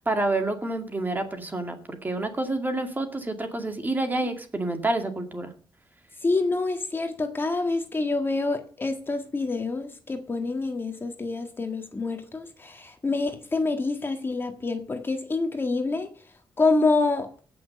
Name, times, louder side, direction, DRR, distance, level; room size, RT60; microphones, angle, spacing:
voice 1, 0.0-5.5, right 2 dB, 20° right, 6 dB, 2.3 m, -28 dB
voice 2, 6.2-16.1 16.6-17.3, left 3 dB, 25° left, 5 dB, 1.7 m, -27 dB
17.0 x 6.3 x 6.8 m, 0.43 s
wide cardioid pair, 120°, 8 cm